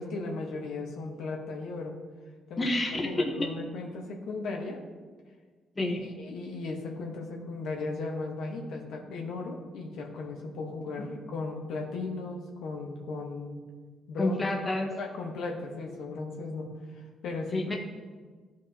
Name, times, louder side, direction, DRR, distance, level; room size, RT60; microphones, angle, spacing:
voice 1, 0.0-2.0 2.5-2.7 3.0-4.8 5.8-13.6 14.1-14.4 14.9-17.8, left 3 dB, 80° left, 0 dB, 1.2 m, -36 dB
voice 2, 2.6-3.3 5.8-6.0 11.0-11.1 14.2-14.9 17.5-17.8, left 1 dB, 25° left, 2 dB, 1.0 m, -29 dB
13.0 x 4.8 x 2.9 m, 1.4 s
cardioid pair, 90°, 0 cm